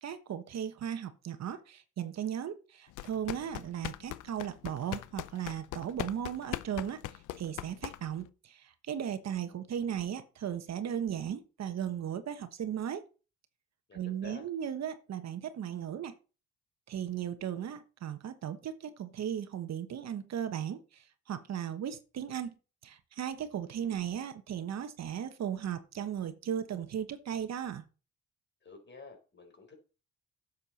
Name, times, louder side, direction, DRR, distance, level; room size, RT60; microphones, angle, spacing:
voice 1, 0.0-7.0 7.3-13.0 13.9-16.1 16.9-22.5 22.8-27.8, right 9 dB, 60° right, 1.2 m, -36 dB
sound 1, 2.9-8.3, left 15 dB, 85° left, 0.6 m, -40 dB
voice 2, 13.9-14.5 28.6-29.7, left 4 dB, 35° left, 4.5 m, -50 dB
11.0 x 7.5 x 4.2 m
cardioid pair, 90°, 30 cm